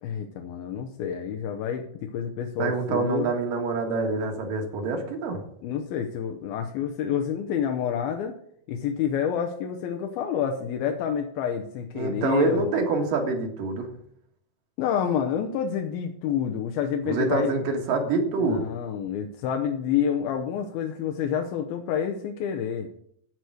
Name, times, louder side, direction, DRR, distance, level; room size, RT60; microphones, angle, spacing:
voice 1, 0.0-3.3 5.6-8.3 8.7-12.7 14.8-17.5 18.4-22.9, left 8 dB, 80° left, 4 dB, 2.7 m, -28 dB
voice 2, 2.6-5.4 11.9-13.9 17.0-18.7, right 3 dB, 65° right, 3 dB, 3.3 m, -26 dB
14.0 x 4.9 x 7.8 m, 0.67 s
omnidirectional pair, 4.3 m